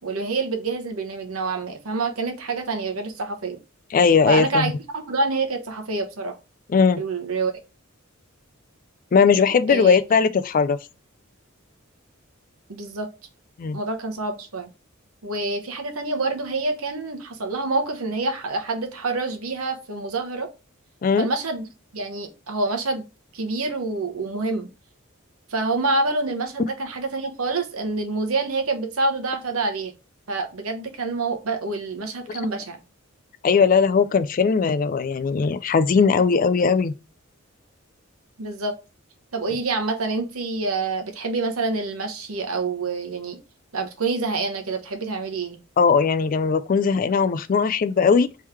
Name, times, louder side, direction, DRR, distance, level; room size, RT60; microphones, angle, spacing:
voice 1, 0.0-3.6 4.3-4.7 5.1-6.4 7.0-7.5 9.7-10.0 12.7-13.1 13.7-14.7 15.2-20.5 21.2-21.7 21.9-23.0 23.3-24.7 25.5-29.9 30.3-32.8 38.4-38.8 39.3-43.4 43.7-45.6, right 3 dB, 80° right, 1.0 m, -27 dB
voice 2, 3.9-4.7 6.7-7.0 9.1-10.8 13.6-13.8 21.0-21.3 32.3-32.4 33.4-36.9 45.8-48.3, left 5 dB, 40° left, 0.3 m, -19 dB
3.6 x 3.2 x 4.3 m
head